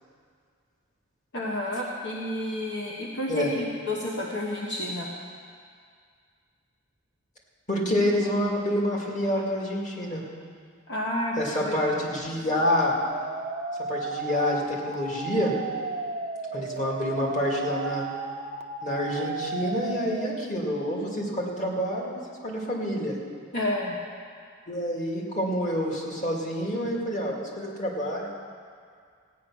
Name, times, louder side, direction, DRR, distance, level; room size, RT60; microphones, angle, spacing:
voice 1, 1.3-5.1 10.9-11.4 11.6-11.8 23.5-24.0, left 1 dB, 55° left, -3 dB, 1.2 m, -30 dB
voice 2, 7.7-10.2 11.4-13.0 13.9-15.5 16.5-18.0 18.8-23.2 24.7-28.3, left 1 dB, 35° left, -2 dB, 2.2 m, -27 dB
sound 1, 13.1-20.5, right 4 dB, 30° right, 0.6 m, -34 dB
15.5 x 9.4 x 6.2 m, 2.1 s
head